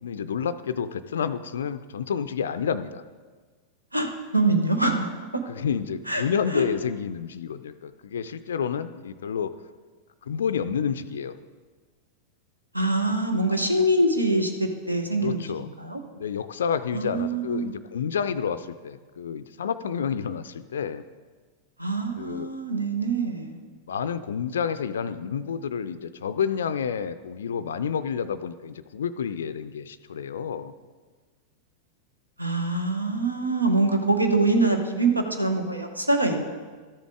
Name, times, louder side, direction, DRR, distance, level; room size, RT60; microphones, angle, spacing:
voice 1, 0.0-3.0 5.5-9.5 10.2-11.4 15.2-15.7 16.1-21.0 22.2-22.5 23.9-30.7, left 7 dB, 65° left, 12 dB, 0.3 m, -29 dB
voice 2, 3.9-5.1 6.1-6.2 6.5-6.6 12.7-16.0 16.9-17.7 21.8-23.6 32.4-36.4, right 2 dB, 85° right, 5 dB, 1.0 m, -24 dB
13.0 x 7.3 x 3.6 m, 1.4 s
figure-of-eight pair, 90°, 0 cm